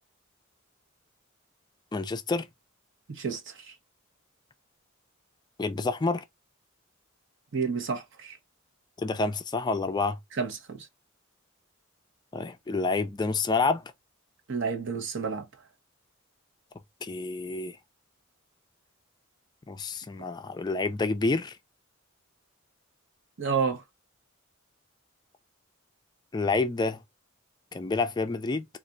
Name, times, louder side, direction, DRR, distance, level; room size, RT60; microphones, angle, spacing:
voice 1, 1.9-2.5 5.6-6.2 9.0-10.2 12.3-13.8 17.0-17.8 19.7-21.6 26.3-27.0 27.7-28.7, left 3 dB, 20° left, 0.3 m, -28 dB
voice 2, 3.1-3.7 7.5-8.4 10.3-10.9 14.5-15.5 23.4-23.8, right 5 dB, 60° right, 1.0 m, -30 dB
4.1 x 2.5 x 2.4 m
head